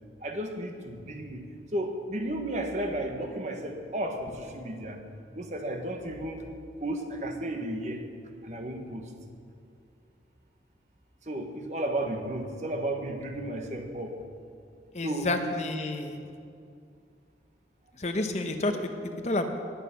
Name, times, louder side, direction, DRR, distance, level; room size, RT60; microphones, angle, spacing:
voice 1, 0.2-5.0 5.3-6.5 6.8-8.0 8.4-9.1 11.3-14.2 15.0-15.3, right 1 dB, 40° right, 4 dB, 1.2 m, -33 dB
voice 2, 14.9-16.2 18.0-19.5, left 2 dB, 40° left, 5 dB, 0.9 m, -30 dB
19.5 x 7.4 x 5.8 m, 2.4 s
head